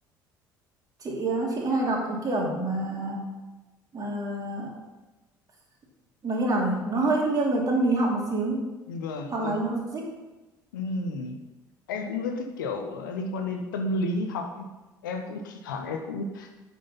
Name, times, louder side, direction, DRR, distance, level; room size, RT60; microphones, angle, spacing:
voice 1, 1.0-3.2 3.9-4.7 6.2-8.6 9.3-10.1, right 2 dB, 35° right, -1 dB, 2.7 m, -26 dB
voice 2, 8.9-9.6 10.7-11.4 11.9-14.7 15.0-16.6, left 2 dB, 70° left, 5 dB, 0.8 m, -32 dB
8.1 x 6.4 x 5.6 m, 1.1 s
figure-of-eight pair, 60°, 11 cm